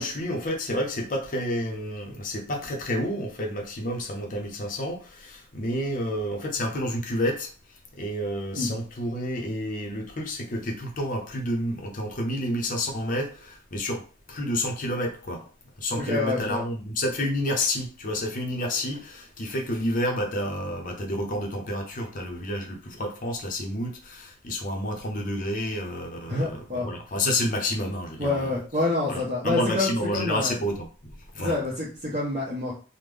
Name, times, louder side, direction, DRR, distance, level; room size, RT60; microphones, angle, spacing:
voice 1, 0.0-7.5 8.0-14.0 14.3-15.5 15.8-26.5 26.7-28.5 29.1-31.6, left 1 dB, 40° left, 2 dB, 0.6 m, -29 dB
voice 2, 15.9-16.6 26.3-26.9 28.2-30.6 31.4-32.7, left 2 dB, 30° right, -6 dB, 0.8 m, -27 dB
3.5 x 2.1 x 3.3 m, 0.38 s
head